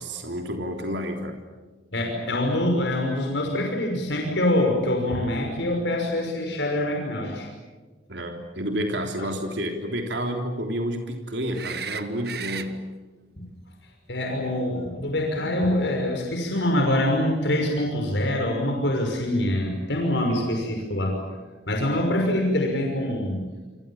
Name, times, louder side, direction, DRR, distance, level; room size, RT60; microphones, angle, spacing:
voice 1, 0.0-1.4 8.1-12.8, equal, 75° right, 3 dB, 3.5 m, -30 dB
voice 2, 1.9-7.5 9.2-9.3 13.4-13.5 14.1-21.2 21.7-23.4, left 1 dB, 75° left, 1 dB, 5.8 m, -25 dB
sound 1, 11.5-12.7 15.6-15.7, right 7 dB, 60° right, 1.6 m, -34 dB
28.5 x 26.5 x 7.3 m, 1.3 s
head